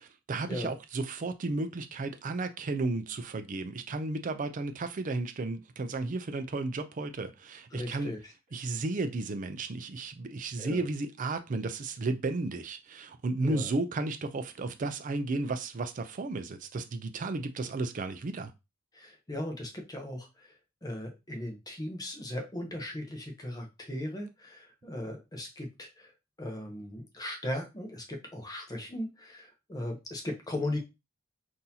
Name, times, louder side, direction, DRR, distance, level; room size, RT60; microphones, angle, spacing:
voice 1, 0.0-8.1 8.5-18.5, right 3 dB, 40° right, 0.4 m, -33 dB
voice 2, 7.7-8.3 10.6-10.8 13.4-13.7 18.9-26.1 26.4-30.8, left 1 dB, 20° left, 0.8 m, -38 dB
3.8 x 2.6 x 2.7 m
head